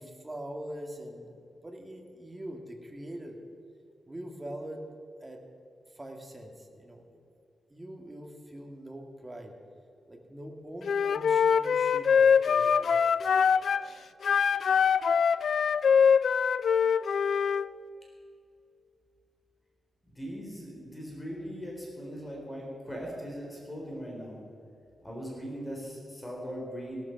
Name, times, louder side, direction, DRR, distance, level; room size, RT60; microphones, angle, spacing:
voice 1, 0.0-3.4 4.1-4.9 5.2-5.4 5.9-7.2 7.7-9.6 10.1-13.0, right 1 dB, 15° right, 2 dB, 2.1 m, -43 dB
Wind instrument woodwind instrument, 10.8-13.8 14.2-17.7, left 6 dB, 65° left, 0.4 m, -23 dB
voice 2, 20.1-24.4 25.0-27.0, equal, 15° left, -2 dB, 3.9 m, -39 dB
17.0 x 12.5 x 5.9 m, 2.5 s
wide cardioid pair, 125°, 0 cm